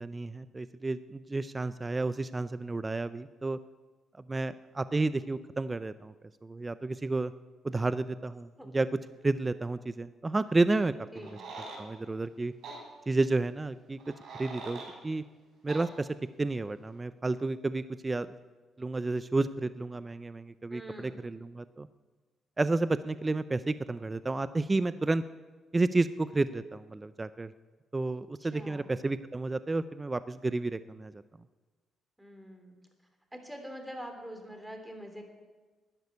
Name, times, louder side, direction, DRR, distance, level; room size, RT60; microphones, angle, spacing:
voice 1, 0.0-3.6 4.3-6.1 6.4-7.3 7.6-8.5 8.7-10.9 11.2-11.3 11.8-12.5 13.1-14.1 14.4-15.2 15.6-16.1 16.4-18.3 18.8-21.9 22.6-25.2 25.7-27.5 27.9-31.2, right 2 dB, 20° right, 14 dB, 0.5 m, -31 dB
voice 2, 11.1-11.4 20.7-21.2 28.4-29.0 32.2-32.8 33.3-35.2, equal, 5° right, 4 dB, 3.2 m, -44 dB
sound 1, 11.2-11.8 12.6-12.8 14.0-14.9 15.7-15.9, right 3 dB, 70° right, 4.9 m, -43 dB
12.0 x 10.5 x 9.6 m, 1.3 s
cardioid pair, 90°, 0 cm